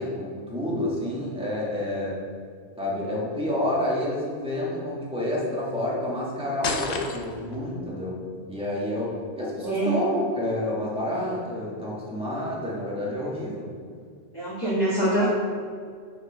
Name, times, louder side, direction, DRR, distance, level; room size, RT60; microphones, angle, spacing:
voice 1, 0.0-2.2 2.8-8.2 8.5-13.7, left 1 dB, 5° right, -6 dB, 1.7 m, -29 dB
sound 1, 6.6-7.6, left 4 dB, 45° left, 0.6 m, -30 dB
voice 2, 9.6-10.0 14.3-15.3, right 1 dB, 20° left, -11 dB, 1.8 m, -24 dB
6.4 x 5.2 x 5.2 m, 2.1 s
omnidirectional pair, 1.2 m